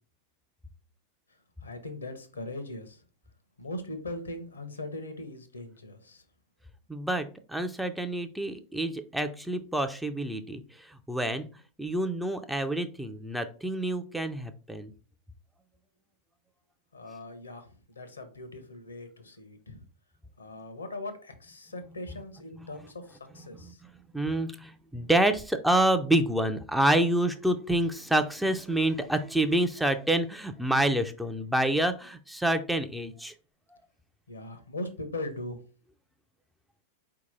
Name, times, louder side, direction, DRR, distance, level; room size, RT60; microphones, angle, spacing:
voice 1, 1.6-3.0 3.6-6.2 16.9-19.8 20.4-23.8 34.3-35.6, left 2 dB, 75° left, 9 dB, 0.8 m, -40 dB
voice 2, 6.9-11.5 11.8-14.9 22.6-22.7 23.6-33.3, right 1 dB, ahead, 7 dB, 0.4 m, -28 dB
4.3 x 2.8 x 4.0 m, 0.37 s
figure-of-eight pair, 90°, 0 cm